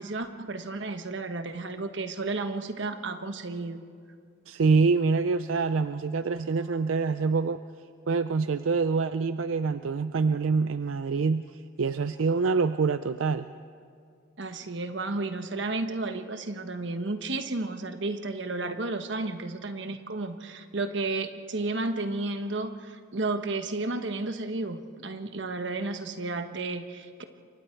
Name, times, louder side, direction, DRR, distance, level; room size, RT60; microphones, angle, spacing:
voice 1, 0.0-3.8 14.4-27.2, right 2 dB, 65° right, 8 dB, 1.2 m, -32 dB
voice 2, 4.5-7.6 8.1-11.5 11.8-13.5, right 4 dB, 85° right, 12 dB, 0.5 m, -25 dB
27.5 x 23.5 x 4.5 m, 2.3 s
head